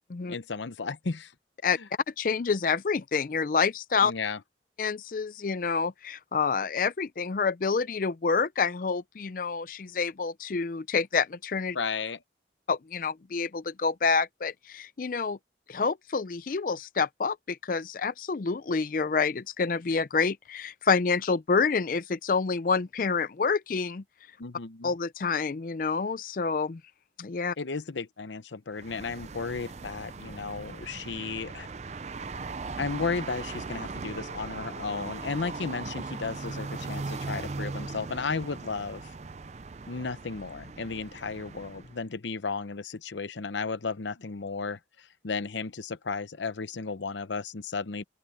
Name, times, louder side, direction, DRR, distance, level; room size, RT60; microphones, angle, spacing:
voice 1, 0.3-1.3 1.8-1.9 4.0-4.4 11.7-12.2 24.4-24.9 27.6-31.7 32.8-39.0 39.9-48.0, left 4 dB, 85° left, 0.8 m, -34 dB
voice 2, 2.2-4.1 4.8-11.8 12.7-15.4 15.7-24.0 24.8-26.8 27.2-27.5, left 5 dB, 50° left, 0.4 m, -28 dB
sound 1, 28.7-42.0, right 3 dB, 40° right, 0.5 m, -39 dB
open air
head